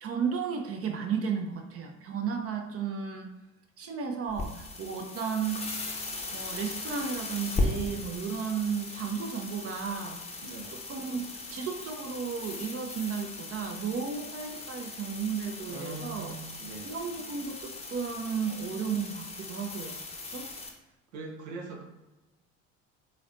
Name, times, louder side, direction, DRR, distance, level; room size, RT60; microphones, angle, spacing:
voice 1, 0.0-3.3 3.8-5.9 6.3-10.2 10.7-16.3 16.8-20.5, right 6 dB, 35° right, 4 dB, 0.6 m, -34 dB
sound 1, 4.3-20.7, left 2 dB, 15° left, 0.7 m, -38 dB
voice 2, 10.4-10.7 15.7-16.9 21.1-21.8, right 4 dB, 75° right, 0 dB, 0.9 m, -41 dB
3.9 x 3.2 x 2.5 m, 1.0 s
figure-of-eight pair, 55°, 40 cm